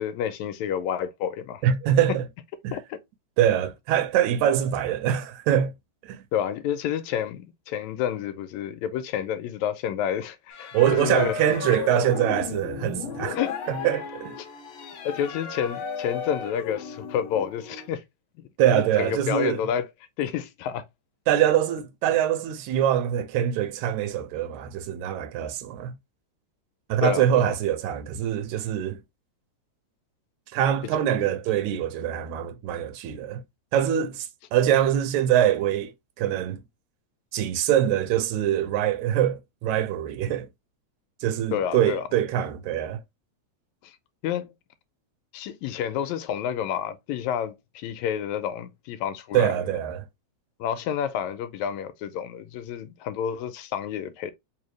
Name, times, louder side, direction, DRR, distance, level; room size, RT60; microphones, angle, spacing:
voice 1, 0.0-1.6 2.7-3.0 6.3-11.4 13.3-13.6 15.0-18.0 18.7-19.9 20.2-20.8 27.0-27.4 30.9-31.0 41.5-42.1 43.8-44.0 44.2-44.5 45.3-49.5 50.6-54.3, left 9 dB, 80° left, 1.9 m, -29 dB
voice 2, 1.6-2.3 2.6-2.7 3.4-5.7 6.0-6.2 10.7-13.4 13.7-14.3 18.6-19.6 21.3-25.9 26.9-29.0 30.5-33.4 33.7-35.9 36.2-36.6 37.3-40.5 41.2-43.0 49.3-50.0, right 10 dB, 85° right, 2.0 m, -24 dB
sound 1, 10.5-17.9, left 6 dB, 60° left, 1.4 m, -35 dB
4.6 x 2.8 x 3.1 m
omnidirectional pair, 3.3 m